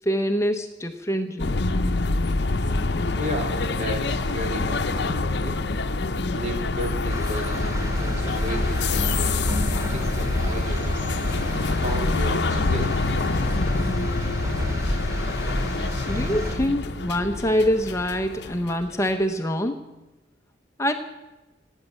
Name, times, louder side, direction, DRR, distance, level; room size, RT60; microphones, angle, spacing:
voice 1, 0.0-1.6 16.1-19.8 20.8-20.9, equal, 15° left, 6 dB, 0.7 m, -25 dB
sound 1, 1.4-19.1, left 3 dB, 65° left, 0.7 m, -26 dB
voice 2, 3.2-5.6 6.3-9.6 9.9-11.1 11.7-13.0, right 1 dB, 40° right, 2 dB, 2.8 m, -34 dB
sound 2, 7.1-16.6, equal, 15° right, 2.5 m, -29 dB
17.5 x 9.1 x 8.2 m, 1.1 s
head